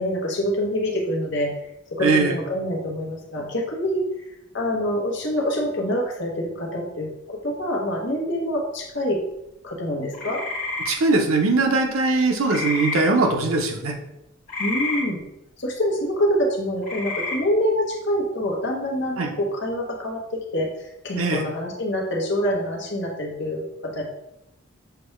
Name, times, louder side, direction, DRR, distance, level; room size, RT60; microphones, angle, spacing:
voice 1, 0.0-1.5 1.9-4.0 4.5-9.2 9.6-10.5 14.6-15.2 15.6-20.7 21.0-24.0, equal, 55° left, 0 dB, 1.0 m, -26 dB
voice 2, 2.0-2.3 10.9-14.0 19.2-19.3 21.2-21.4, right 3 dB, 85° right, 2 dB, 0.7 m, -21 dB
sound 1, 10.1-10.9 12.5-13.0 14.5-15.0 16.8-17.4, left 2 dB, 40° left, 1.2 m, -28 dB
6.7 x 2.3 x 3.1 m, 0.85 s
head